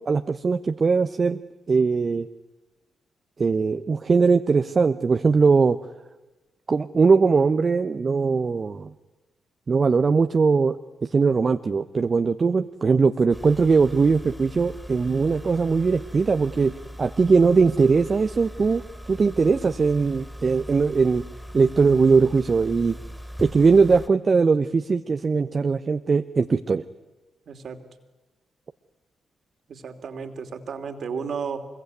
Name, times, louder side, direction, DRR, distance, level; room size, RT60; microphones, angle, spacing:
voice 1, 0.0-1.4 1.7-2.3 3.4-5.8 6.7-8.9 9.7-10.8 11.1-16.7 17.0-21.3 21.5-23.0 23.4-26.8, right 4 dB, 45° right, 8 dB, 1.0 m, -20 dB
sound 1, 13.3-24.1, equal, 5° left, 3.9 m, -40 dB
voice 2, 27.5-27.8 29.7-31.7, right 6 dB, 65° right, 8 dB, 2.9 m, -34 dB
25.0 x 22.5 x 9.5 m, 1.1 s
hypercardioid pair, 40°, 0 cm